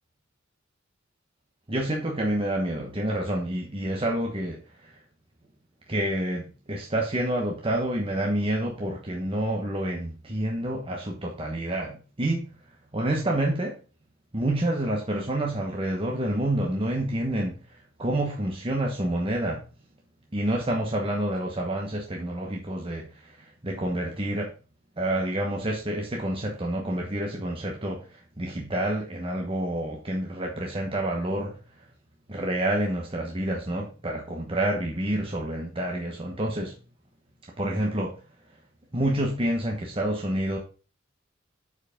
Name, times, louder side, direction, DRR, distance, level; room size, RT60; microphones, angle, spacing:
voice 1, 1.7-5.0 5.9-12.4 12.9-13.8 14.3-19.6 20.3-24.5 25.0-31.6 32.3-36.7 37.6-38.2 38.9-40.6, right 1 dB, 25° right, 1.1 m, -28 dB
6.9 x 4.9 x 5.0 m
head